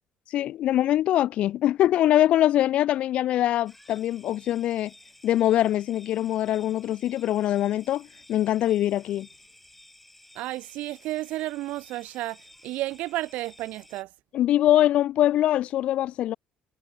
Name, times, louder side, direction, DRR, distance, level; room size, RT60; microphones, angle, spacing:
voice 1, 0.3-4.9 5.2-9.3 14.3-16.4, left 13 dB, 45° left, 0.4 m, -23 dB
sound 1, 3.7-14.0, left 1 dB, 5° left, 1.7 m, -54 dB
voice 2, 10.4-14.1, right 17 dB, 65° right, 0.5 m, -32 dB
cardioid pair, 180°, 3 cm